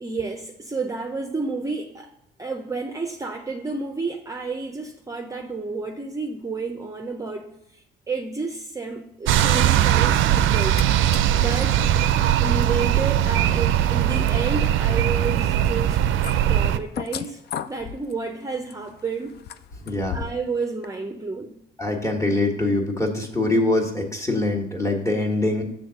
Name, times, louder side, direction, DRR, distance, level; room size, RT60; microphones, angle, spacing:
voice 1, 0.0-2.1 2.4-10.8 11.3-11.8 12.4-16.0 16.4-17.4 17.7-19.3 20.1-21.5, right 4 dB, 15° right, 3 dB, 0.6 m, -31 dB
sound 1, 9.3-16.8, right 11 dB, 80° right, 0.4 m, -20 dB
sound 2, 10.5-10.8 11.1-20.5 20.8-20.9, left 9 dB, 55° left, 0.4 m, -38 dB
voice 2, 19.8-20.2 21.8-25.6, left 2 dB, 15° left, 1 dB, 1.5 m, -23 dB
7.0 x 3.6 x 6.3 m, 0.79 s
cardioid pair, 90°, 20 cm